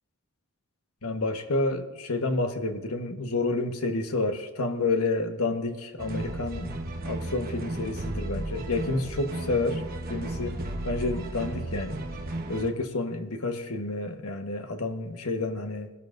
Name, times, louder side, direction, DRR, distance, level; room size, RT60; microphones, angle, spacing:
voice 1, 1.0-6.7 7.0-9.8 10.1-12.0 12.5-15.9, left 2 dB, 80° left, 5 dB, 1.3 m, -29 dB
sound 1, 6.0-12.7, right 1 dB, 45° right, 1.1 m, -34 dB
19.5 x 12.5 x 2.6 m, 1.1 s
head